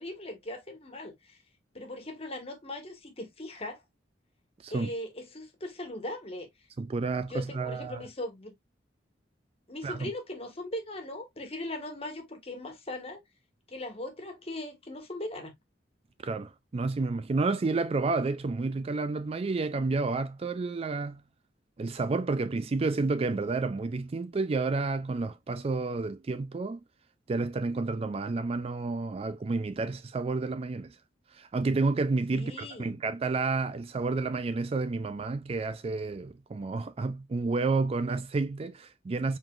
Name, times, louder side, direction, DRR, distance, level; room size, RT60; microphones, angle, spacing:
voice 1, 0.0-1.4 1.7-3.8 4.7-6.5 7.1-8.5 9.7-13.2 13.7-15.5 32.3-33.0, left 1 dB, 35° left, 1.5 m, -39 dB
voice 2, 6.8-8.0 9.8-10.1 16.2-21.2 21.8-26.8 27.3-30.9 31.3-39.4, right 3 dB, 35° right, 0.3 m, -30 dB
5.0 x 3.8 x 2.4 m
head